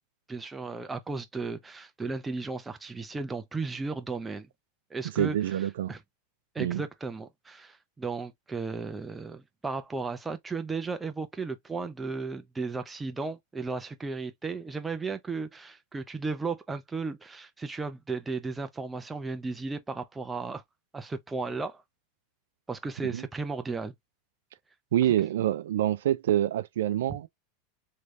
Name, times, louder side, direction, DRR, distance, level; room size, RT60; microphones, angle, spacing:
voice 1, 0.3-4.5 4.9-6.0 6.5-20.6 20.9-21.8 22.7-23.9, right 4 dB, 10° right, 0.6 m, -35 dB
voice 2, 5.2-5.9 6.6-6.8 23.0-23.2 24.9-27.3, right 12 dB, 85° right, 0.4 m, -26 dB
3.3 x 3.1 x 2.5 m
supercardioid pair, 140°, 0 cm